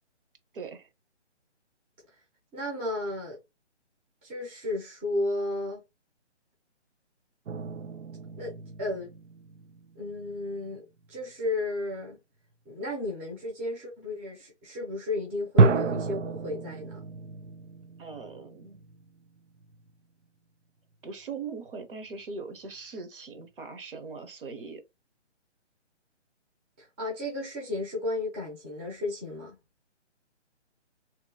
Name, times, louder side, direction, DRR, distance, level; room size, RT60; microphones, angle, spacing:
voice 1, 0.5-0.9 18.0-18.8 21.0-24.8, right 4 dB, 50° right, 1.0 m, -40 dB
voice 2, 2.5-3.4 4.2-5.8 8.4-8.5 8.8-9.1 9.9-12.2 12.7-17.0 26.8-29.6, left 2 dB, 10° right, 0.7 m, -33 dB
sound 1, 7.5-10.4 11.0-11.3 15.6-19.9, right 4 dB, 85° right, 0.5 m, -30 dB
3.0 x 3.0 x 3.7 m
figure-of-eight pair, 150°, 35 cm